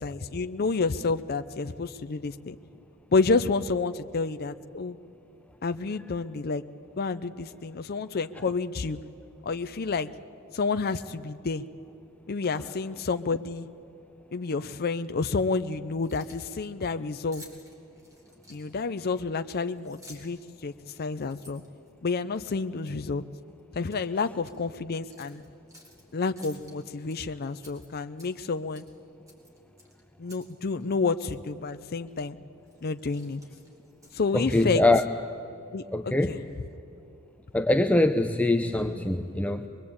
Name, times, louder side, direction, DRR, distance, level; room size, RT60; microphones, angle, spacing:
voice 1, 0.0-2.6 3.1-5.0 5.6-6.6 7.0-9.0 9.4-10.1 10.5-11.6 12.3-13.7 14.3-17.4 18.5-21.6 22.0-23.2 23.7-25.4 26.1-28.8 30.2-32.4 32.8-33.4 34.1-34.8 35.7-36.4, left 4 dB, 45° left, 9 dB, 0.6 m, -29 dB
Keys jangling, 15.9-16.6 17.3-18.9 19.7-20.4 20.8-22.4 22.8-23.0 23.4-24.0 24.4-24.6 25.1-26.0 26.4-27.2 27.6-28.5 28.7-28.9 29.3-30.5 30.8-30.9 31.3-31.5 32.1-32.3 32.6-34.4, left 1 dB, 15° right, 4.1 m, -53 dB
voice 2, 34.3-35.0 35.9-36.4 37.5-39.7, left 2 dB, 5° left, 6 dB, 0.6 m, -23 dB
23.0 x 22.5 x 8.6 m, 2.7 s
head